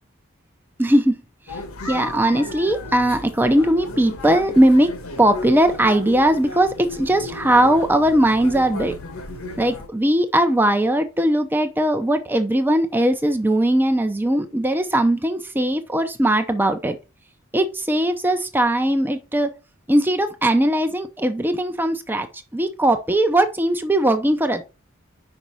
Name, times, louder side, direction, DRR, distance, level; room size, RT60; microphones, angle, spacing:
voice 1, 0.8-1.2 1.5-1.6 1.9-4.9 5.2-8.9 9.6-17.0 17.5-19.5 19.9-22.3 22.5-24.6, right 1 dB, 10° right, 0.6 m, -19 dB
sound 1, 1.5-9.9, left 2 dB, 85° left, 1.4 m, -34 dB
5.5 x 5.1 x 4.5 m
head